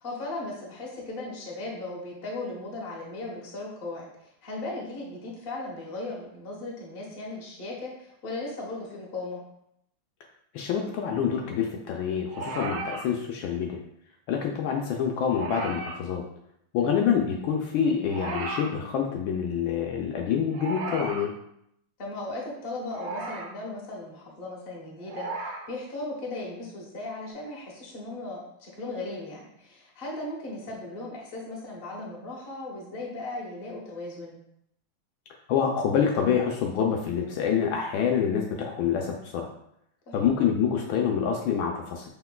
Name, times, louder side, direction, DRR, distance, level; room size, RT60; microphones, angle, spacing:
voice 1, 0.0-9.4 16.8-17.0 22.0-34.4 40.1-40.3, left 2 dB, 40° left, -2 dB, 0.9 m, -37 dB
voice 2, 10.5-13.8 14.3-16.2 16.7-21.3 35.5-39.5 40.1-42.1, left 7 dB, 75° left, 1 dB, 1.3 m, -26 dB
sound 1, 12.3-13.1 15.3-16.0 18.0-18.7 20.5-21.3 22.9-23.5 25.0-25.7 27.2-27.3, right 3 dB, 80° right, 1.4 m, -35 dB
5.8 x 3.7 x 2.2 m, 0.75 s
omnidirectional pair, 2.3 m